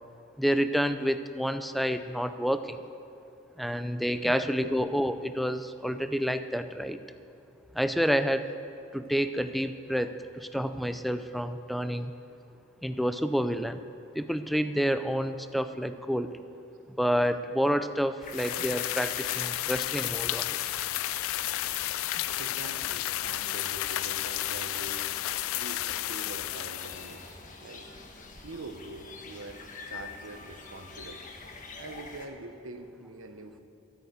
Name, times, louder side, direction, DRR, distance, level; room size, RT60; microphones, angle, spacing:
voice 1, 0.4-2.8 3.6-7.0 7.7-8.5 8.9-12.1 12.8-13.8 14.1-16.3 17.0-20.6, equal, ahead, 10 dB, 0.4 m, -29 dB
voice 2, 4.2-4.8 8.1-8.2 18.6-18.7 22.2-25.1 25.6-27.2 27.6-27.9 28.4-31.2 31.8-33.6, right 2 dB, 85° right, 7 dB, 1.0 m, -44 dB
sound 1, 18.2-32.3, left 4 dB, 40° left, 1.2 m, -46 dB
sound 2, 18.3-27.3, left 15 dB, 80° left, 0.3 m, -32 dB
13.0 x 9.1 x 8.1 m, 2.8 s
head